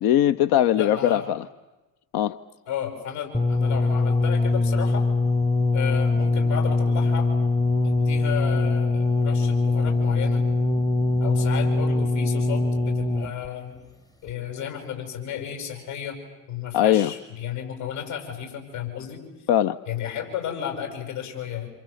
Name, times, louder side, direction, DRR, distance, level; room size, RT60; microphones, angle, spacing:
voice 1, 0.0-1.4 2.1-2.4 16.7-17.1 19.5-19.8, left 11 dB, 50° left, 11 dB, 0.8 m, -20 dB
voice 2, 0.7-1.3 2.7-5.1 5.7-7.3 7.8-10.4 11.2-13.8 14.2-16.2 16.5-19.2 19.9-21.7, left 9 dB, 70° left, 3 dB, 7.7 m, -33 dB
sound 1, 3.3-13.5 14.3-14.4, left 3 dB, 10° left, 0.9 m, -22 dB
27.5 x 27.5 x 7.1 m, 1.1 s
hypercardioid pair, 65°, 48 cm